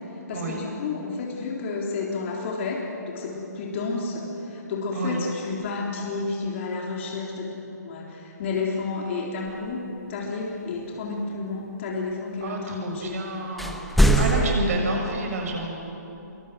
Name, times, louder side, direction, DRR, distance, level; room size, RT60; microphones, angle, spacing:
voice 1, 0.3-9.8 10.1-13.2 14.0-14.9, left 3 dB, 45° left, -1 dB, 3.5 m, -30 dB
voice 2, 12.4-13.8 14.1-15.7, right 3 dB, 55° right, 2 dB, 6.6 m, -30 dB
sound 1, 13.6-14.7, right 1 dB, ahead, 1.0 m, -20 dB
26.0 x 23.0 x 8.0 m, 2.9 s
hypercardioid pair, 140°, 10 cm